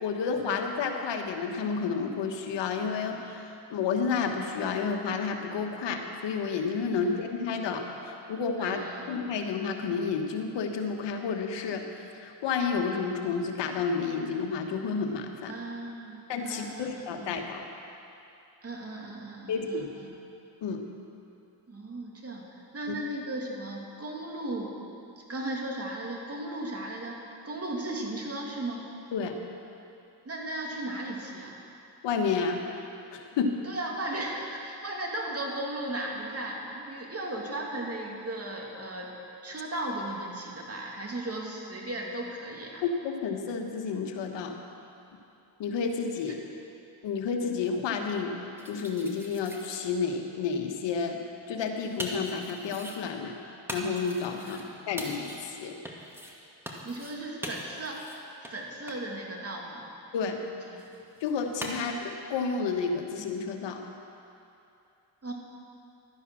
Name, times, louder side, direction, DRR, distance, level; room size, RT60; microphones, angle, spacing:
voice 1, 0.0-8.8 9.1-11.8 12.2-15.5 16.3-17.6 19.5-19.9 20.6-20.8 29.1-29.3 32.0-32.6 33.1-33.5 42.8-44.6 45.6-46.4 47.0-51.2 51.5-55.8 60.1-60.4 61.2-63.8, left 5 dB, 75° left, 3 dB, 1.4 m, -31 dB
voice 2, 8.6-9.2 15.5-17.3 18.6-20.1 21.7-24.8 25.2-28.9 30.2-31.6 33.6-39.1 39.4-42.8 46.3-46.4 54.4-54.7 56.8-58.0 58.5-59.9 60.7-61.0 61.7-62.0 65.2-65.3, right 1 dB, 35° right, -1 dB, 2.6 m, -36 dB
sound 1, 48.6-49.7 51.4-53.0 53.7-54.6 55.0-55.5 55.8-56.4 56.7-57.2 57.4-58.2 58.4-58.5 58.9-59.0 60.8-61.7, equal, 5° right, 2.0 m, -41 dB
13.0 x 9.9 x 6.3 m, 2.7 s
supercardioid pair, 70°, 43 cm